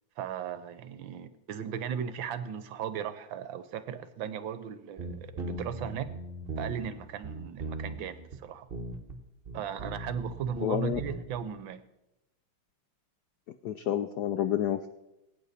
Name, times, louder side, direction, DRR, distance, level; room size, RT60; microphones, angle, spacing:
voice 1, 0.2-6.1 6.6-8.7 9.5-11.8, right 8 dB, 70° right, 12 dB, 1.4 m, -37 dB
sound 1, 5.0-6.9 7.2-8.0 8.3-8.4 8.7-9.2 9.5-11.4, right 2 dB, 35° right, 1.1 m, -38 dB
voice 2, 10.6-11.0 13.6-14.9, left 11 dB, 75° left, 9 dB, 0.9 m, -29 dB
20.0 x 8.8 x 4.2 m, 0.92 s
omnidirectional pair, 2.3 m